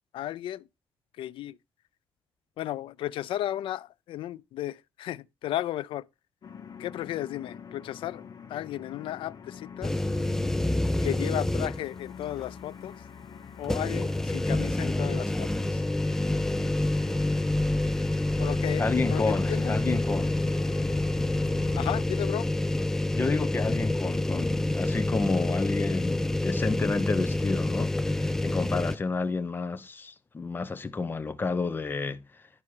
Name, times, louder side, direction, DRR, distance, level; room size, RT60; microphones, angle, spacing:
voice 1, 0.1-0.6 1.2-1.6 2.6-6.0 6.8-8.2 8.5-9.9 11.0-12.9 13.6-15.8 18.4-19.8 21.7-22.5, left 13 dB, 80° left, 0.4 m, -34 dB
sound 1, 6.4-22.0, left 7 dB, 50° left, 1.1 m, -45 dB
sound 2, 9.8-12.0 12.4-12.5 13.6-29.0, left 1 dB, 5° left, 0.3 m, -27 dB
voice 2, 18.8-20.4 23.1-32.2, left 4 dB, 25° left, 0.8 m, -30 dB
11.0 x 4.2 x 4.8 m
cardioid pair, 130°, 9 cm